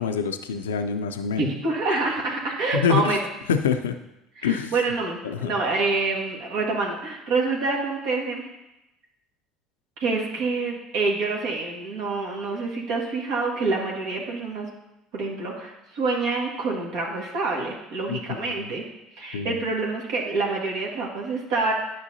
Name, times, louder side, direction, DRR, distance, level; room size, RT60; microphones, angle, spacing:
voice 1, 0.0-1.4 2.7-3.2 3.5-4.0 4.4-4.7 5.2-5.5 18.1-18.7 19.3-19.6, left 7 dB, 85° left, 9 dB, 0.4 m, -26 dB
voice 2, 1.4-3.2 4.4-8.5 10.0-14.7 15.1-18.8 19.1-21.7, right 3 dB, 70° right, -1 dB, 1.7 m, -27 dB
10.5 x 5.5 x 2.7 m, 0.92 s
hypercardioid pair, 70°, 0 cm